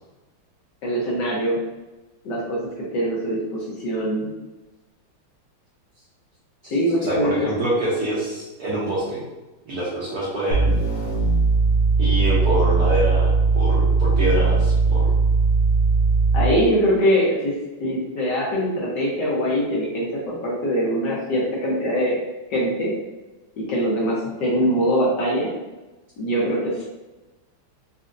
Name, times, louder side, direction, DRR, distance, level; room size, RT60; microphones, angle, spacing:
voice 1, 0.8-1.6 2.2-2.6 2.9-4.3 6.7-7.5 16.3-17.5 17.8-22.2 22.5-22.9 23.6-25.5 26.2-26.9, equal, 65° left, -5 dB, 1.3 m, -22 dB
voice 2, 7.0-9.2 9.7-10.8 12.0-15.2, right 1 dB, 60° right, -7 dB, 1.0 m, -25 dB
sound 1, 10.5-16.7, right 4 dB, 85° left, 1.8 m, -19 dB
4.2 x 2.5 x 2.4 m, 1.1 s
omnidirectional pair, 2.3 m